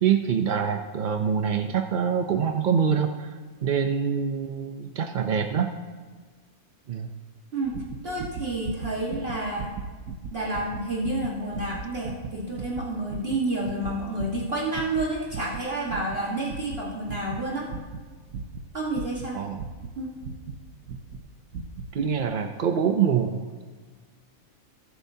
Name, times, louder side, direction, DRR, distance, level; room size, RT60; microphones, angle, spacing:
voice 1, 0.0-5.7 6.9-7.1 19.3-19.6 21.9-23.6, right 7 dB, 60° right, 6 dB, 0.5 m, -25 dB
sound 1, 7.6-20.6 20.9-21.2 21.5-21.9 22.2-22.3, right 5 dB, 80° right, 1.2 m, -38 dB
voice 2, 8.0-9.7 10.3-17.7 18.7-19.4 19.9-20.1, right 2 dB, 45° right, -4 dB, 1.7 m, -29 dB
20.0 x 8.0 x 2.7 m, 1.5 s
omnidirectional pair, 1.5 m